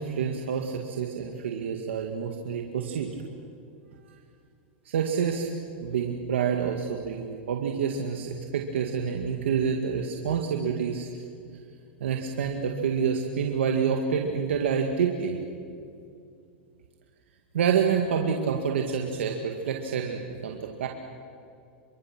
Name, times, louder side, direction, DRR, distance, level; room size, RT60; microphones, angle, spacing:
voice 1, 0.0-3.1 4.9-5.5 5.8-11.1 12.0-15.4 17.5-20.9, right 7 dB, 85° right, 2 dB, 2.0 m, -28 dB
28.5 x 24.5 x 6.1 m, 2.5 s
hypercardioid pair, 130°, 6 cm